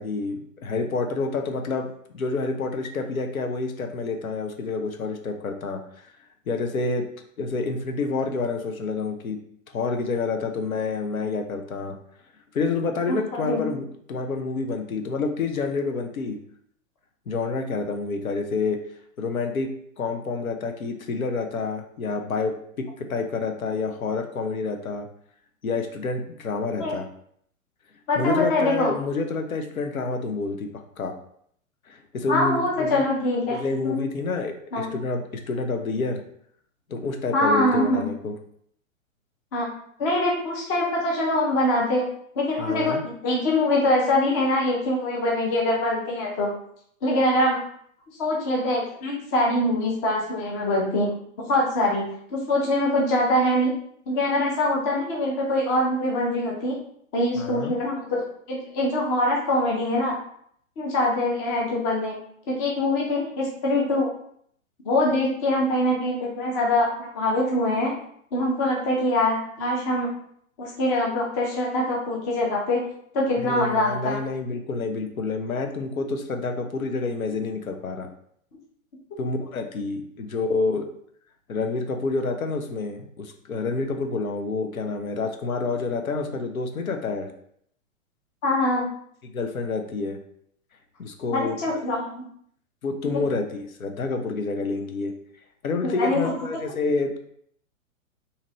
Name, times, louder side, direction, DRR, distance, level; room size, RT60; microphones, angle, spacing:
voice 1, 0.0-1.9 2.1-6.1 6.5-7.1 7.4-9.4 9.7-12.0 12.5-16.4 17.3-18.8 19.2-19.7 20.0-25.1 25.6-27.1 28.1-30.7 31.0-31.1 31.9-33.0 33.5-36.2 36.9-38.3 42.6-43.0 57.4-57.7 73.4-78.1 79.2-80.9 81.5-87.3 89.3-90.2 91.0-91.8 92.8-95.1 95.6-97.2, left 4 dB, 90° left, 5 dB, 0.7 m, -28 dB
voice 2, 13.4-13.7 26.8-27.0 28.1-28.9 32.3-34.1 34.7-35.0 37.3-38.1 39.5-39.7 40.0-42.0 42.4-46.5 47.0-47.6 48.2-51.1 51.5-53.8 54.1-56.8 57.1-58.0 58.5-60.2 60.8-62.2 62.5-64.1 64.8-67.9 68.3-70.1 70.6-72.9 73.1-74.2 88.4-88.9 91.3-92.3 93.1-93.2 95.8-96.2, left 1 dB, 15° left, -3 dB, 0.3 m, -24 dB
2.8 x 2.5 x 3.0 m, 0.67 s
figure-of-eight pair, 115°, 41 cm